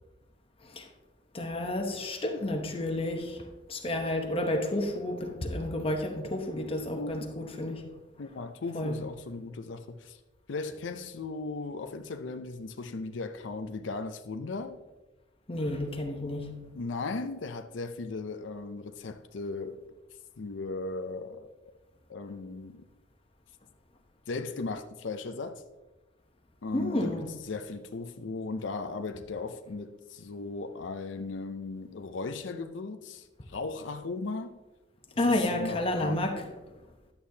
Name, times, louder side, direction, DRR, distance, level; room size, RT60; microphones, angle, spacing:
voice 1, 1.3-7.9 8.7-8.9 15.5-16.6 26.7-27.3 35.2-36.5, left 1 dB, 30° left, 0.9 m, -31 dB
voice 2, 7.0-7.3 8.2-10.2 10.5-14.8 16.7-19.8 20.4-21.5 22.1-22.8 24.3-25.6 26.6-34.6 35.3-36.2, left 3 dB, 75° left, 0.5 m, -37 dB
11.5 x 8.3 x 2.8 m
head